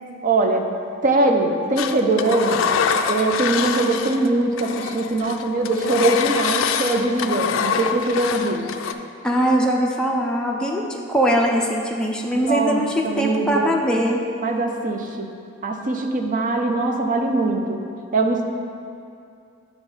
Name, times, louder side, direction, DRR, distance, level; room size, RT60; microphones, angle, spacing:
voice 1, 0.2-0.7 1.0-2.6 3.1-8.7 12.3-13.8 14.4-15.3 15.6-17.8 18.1-18.4, right 2 dB, 40° right, 3 dB, 0.5 m, -22 dB
Engine, 1.8-4.3 4.6-8.9, left 6 dB, 70° left, 0.3 m, -24 dB
voice 2, 9.2-14.2, equal, 5° left, -2 dB, 0.4 m, -21 dB
8.7 x 3.0 x 5.5 m, 2.4 s
head